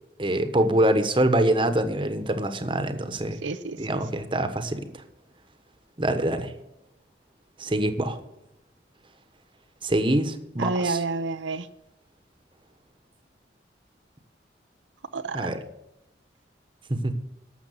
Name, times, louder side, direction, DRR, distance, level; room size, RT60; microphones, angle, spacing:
voice 1, 0.2-3.4 3.8-4.9 6.0-6.5 7.6-8.2 9.8-11.0 15.3-15.6 16.9-17.1, right 1 dB, 25° right, 9 dB, 1.2 m, -24 dB
voice 2, 3.4-3.8 10.6-11.7 15.1-15.5, right 3 dB, 85° right, 10 dB, 0.7 m, -29 dB
12.0 x 7.3 x 9.2 m, 0.88 s
head